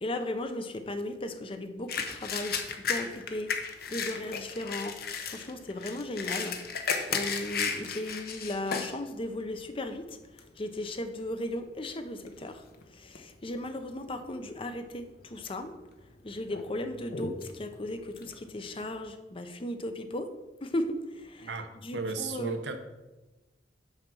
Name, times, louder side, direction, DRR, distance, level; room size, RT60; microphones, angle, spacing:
voice 1, 0.0-10.2 10.6-12.6 12.9-15.7 16.2-20.3 20.6-21.5 21.8-22.6, left 1 dB, 30° left, 8 dB, 0.6 m, -36 dB
sound 1, 1.9-9.0 9.5-9.6 10.1-10.5 11.2-11.4 11.7-12.8 13.1-13.7 14.1-14.2 15.0-15.6 16.0-19.1, left 5 dB, 60° left, 0.9 m, -35 dB
voice 2, 21.4-22.8, right 4 dB, 80° right, 7 dB, 0.9 m, -35 dB
6.5 x 5.7 x 6.1 m, 1.1 s
head